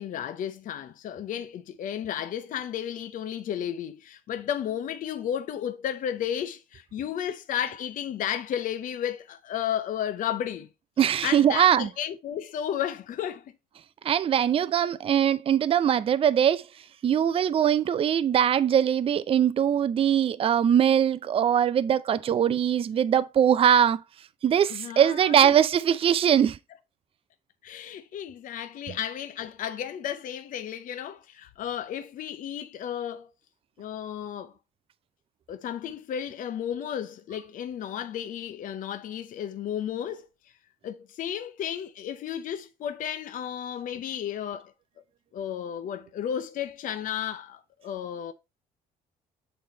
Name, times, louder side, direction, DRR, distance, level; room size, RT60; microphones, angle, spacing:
voice 1, 0.0-10.7 11.2-13.5 24.7-25.5 27.6-33.3 33.8-34.5 35.5-40.3 40.8-44.7 45.3-48.3, left 9 dB, 55° left, 0.6 m, -33 dB
voice 2, 11.0-11.9 14.0-16.7 17.0-24.0 24.4-26.6 28.9-29.0, right 9 dB, 35° right, 0.4 m, -22 dB
6.7 x 4.1 x 4.1 m
cardioid pair, 110°, 17 cm